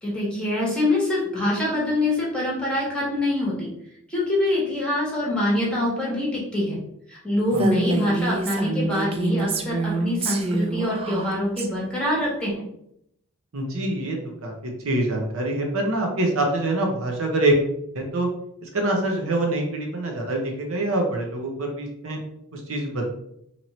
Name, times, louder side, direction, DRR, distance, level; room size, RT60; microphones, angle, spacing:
voice 1, 0.0-3.7 4.1-6.8 7.1-12.6, left 1 dB, 5° left, -5 dB, 1.2 m, -24 dB
Female speech woman speaking, 7.5-11.7, right 2 dB, 25° right, 0.3 m, -27 dB
voice 2, 13.5-14.2 14.4-17.6 17.9-18.3 18.6-22.2 22.5-23.1, right 1 dB, 60° right, 1 dB, 0.7 m, -25 dB
3.0 x 2.6 x 4.1 m, 0.75 s
head